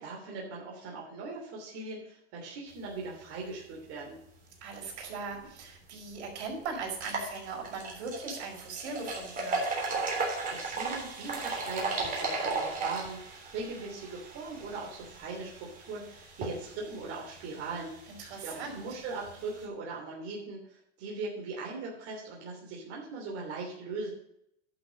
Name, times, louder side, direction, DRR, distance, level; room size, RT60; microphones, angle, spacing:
voice 1, 0.0-4.2 10.4-18.1 18.4-24.1, right 3 dB, 40° right, -3 dB, 3.1 m, -40 dB
voice 2, 4.6-9.7 18.1-18.8, right 4 dB, 70° right, 0 dB, 5.0 m, -39 dB
sound 1, 5.6-5.7 6.2-6.3 6.9-19.6, right 3 dB, 25° right, 3.4 m, -36 dB
11.0 x 6.2 x 6.2 m, 0.77 s
supercardioid pair, 135°, 35 cm